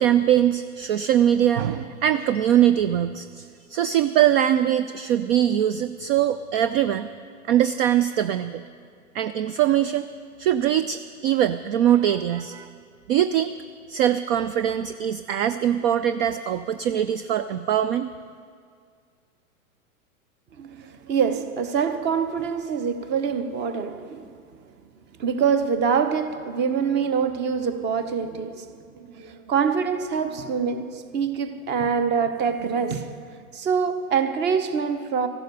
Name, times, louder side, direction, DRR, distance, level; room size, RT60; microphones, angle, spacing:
voice 1, 0.0-7.1 7.5-8.6 9.1-10.1 10.4-12.7 13.1-13.5 13.9-18.1, right 10 dB, 45° right, 0.5 m, -22 dB
voice 2, 20.6-24.3 25.2-28.7 28.9-33.1 33.5-35.3, right 6 dB, 25° right, 0.9 m, -25 dB
14.5 x 11.5 x 6.8 m
hypercardioid pair, 125°, 43 cm